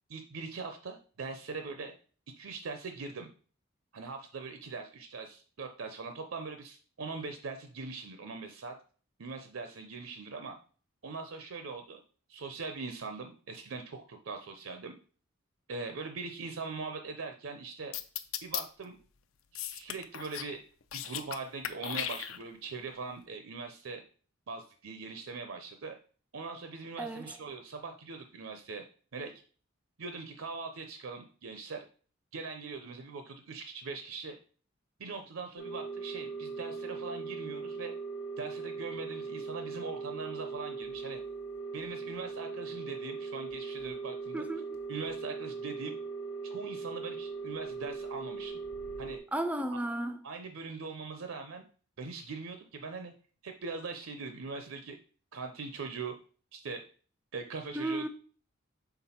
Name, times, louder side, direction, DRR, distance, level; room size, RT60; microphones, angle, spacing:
voice 1, 0.1-1.9 2.4-3.3 3.9-8.7 9.2-10.6 11.0-12.0 12.3-14.9 15.7-17.9 18.4-19.0 19.5-20.6 20.9-24.0 24.5-26.0 26.3-28.8 29.1-29.3 30.0-31.8 32.3-34.4 35.0-37.9 38.4-41.2 41.7-44.4 44.9-46.0 46.4-48.6 49.0-49.2 50.2-51.6 52.0-53.1 53.4-55.0 55.3-56.1 56.5-56.8 57.3-58.1, right 4 dB, 80° right, 0.6 m, -41 dB
sound 1, 17.9-18.6 19.6-20.5 20.8-21.4 21.6-22.7, left 11 dB, 80° left, 0.5 m, -36 dB
voice 2, 27.0-27.4 44.3-44.8 49.3-50.2 57.7-58.1, right 1 dB, 5° right, 0.3 m, -34 dB
sound 2, 35.6-49.2, right 4 dB, 45° left, 0.9 m, -39 dB
5.9 x 3.7 x 4.3 m
head